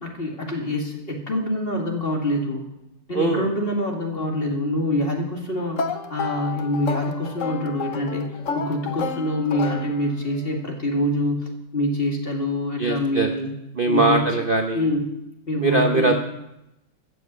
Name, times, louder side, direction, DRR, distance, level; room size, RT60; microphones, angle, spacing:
voice 1, 0.0-2.6 3.1-5.8 6.1-8.3 8.5-13.5 13.9-14.3 14.7-15.0 15.5-16.1, left 1 dB, 30° left, 1 dB, 2.2 m, -25 dB
voice 2, 3.1-3.5 12.8-13.3 13.8-14.9 15.6-16.1, right 3 dB, 45° right, 4 dB, 0.7 m, -21 dB
sound 1, 5.8-10.4, left 5 dB, 55° left, 1.0 m, -31 dB
14.0 x 6.9 x 8.1 m, 0.89 s
omnidirectional pair, 2.0 m